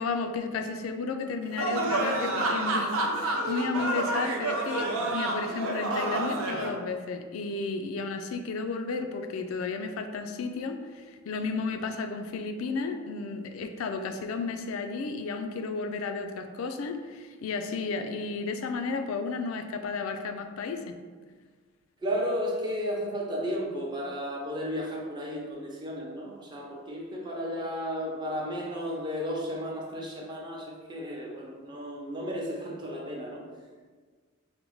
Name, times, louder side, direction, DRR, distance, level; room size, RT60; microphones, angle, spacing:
voice 1, 0.0-21.0, left 4 dB, 75° left, 6 dB, 0.4 m, -33 dB
sound 1, 1.6-6.7, right 2 dB, 85° right, 0.5 m, -29 dB
voice 2, 22.0-33.4, equal, 20° right, -3 dB, 0.6 m, -33 dB
5.0 x 2.1 x 3.0 m, 1.5 s
head